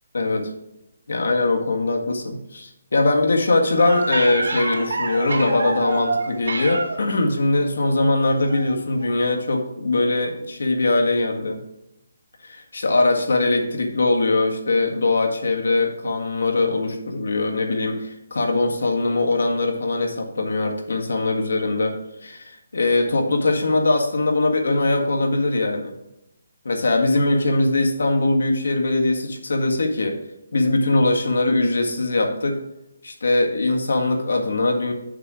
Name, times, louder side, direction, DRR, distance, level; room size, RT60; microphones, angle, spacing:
voice 1, 0.1-0.5 1.1-11.6 12.4-21.9 22.4-25.9 26.7-30.2 30.5-32.6 33.0-34.9, left 2 dB, 90° left, 2 dB, 1.7 m, -21 dB
sound 1, 3.8-7.1 8.4-8.7 9.0-9.1, right 3 dB, 85° right, 2.0 m, -27 dB
6.6 x 6.2 x 4.8 m, 0.87 s
hypercardioid pair, 180°, 0 cm